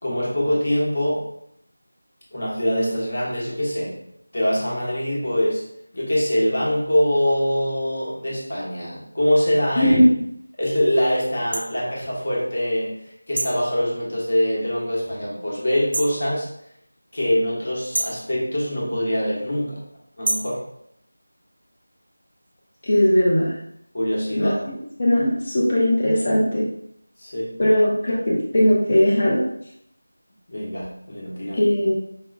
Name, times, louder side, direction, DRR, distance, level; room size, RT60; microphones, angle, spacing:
voice 1, 0.0-1.3 2.3-3.9 4.3-5.7 5.9-10.0 10.6-16.5 17.1-19.9 20.2-20.6 23.9-24.6 27.2-27.6 30.5-31.6, equal, 50° left, -6 dB, 1.2 m, -23 dB
voice 2, 9.8-10.1 22.9-23.5 24.4-24.5 25.0-26.6 27.6-29.4 31.5-31.9, left 1 dB, 35° left, -5 dB, 0.8 m, -18 dB
sound 1, 11.5-11.7 13.4-13.6 15.9-16.2 17.9-18.2 20.2-20.6, right 2 dB, 50° right, 0.4 m, -26 dB
4.8 x 2.2 x 2.4 m, 0.71 s
figure-of-eight pair, 170°, 0 cm